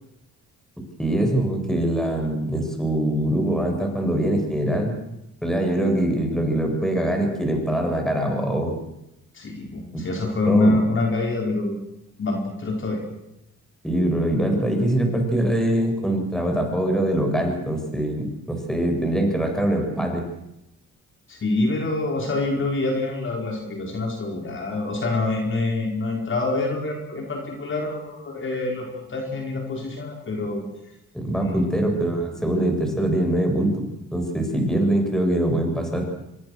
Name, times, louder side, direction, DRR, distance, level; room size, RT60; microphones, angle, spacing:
voice 1, 1.0-5.0 5.4-8.7 9.9-10.0 10.5-10.8 13.8-20.2 31.1-33.8 34.1-36.1, right 1 dB, ahead, 2 dB, 7.4 m, -23 dB
voice 2, 9.3-11.8 12.2-13.0 21.3-30.6 31.4-31.7, left 2 dB, 40° left, 1 dB, 5.0 m, -26 dB
25.5 x 21.0 x 6.7 m, 0.86 s
cardioid pair, 90°, 30 cm